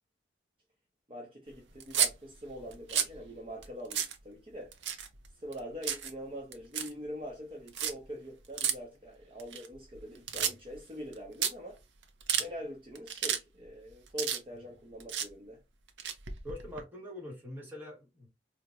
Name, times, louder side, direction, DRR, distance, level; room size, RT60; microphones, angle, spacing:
voice 1, 1.1-4.8 5.4-11.8 12.4-15.6, equal, 30° right, 0.7 m, -43 dB
sound 1, 1.8-2.1 2.7-3.2 3.6-3.7 3.9-4.2 4.7-5.3 5.5-6.1 6.5-6.9 7.7-7.9 8.6-8.7 9.4-10.0 10.3-10.8 11.1-11.2 11.4-11.5 12.0-12.5 13.0-13.4 13.7-14.7 15.0-15.3 15.9-16.8, right 8 dB, 90° right, 0.6 m, -31 dB
voice 2, 16.4-18.3, left 1 dB, 10° right, 1.2 m, -43 dB
4.4 x 2.1 x 2.5 m
head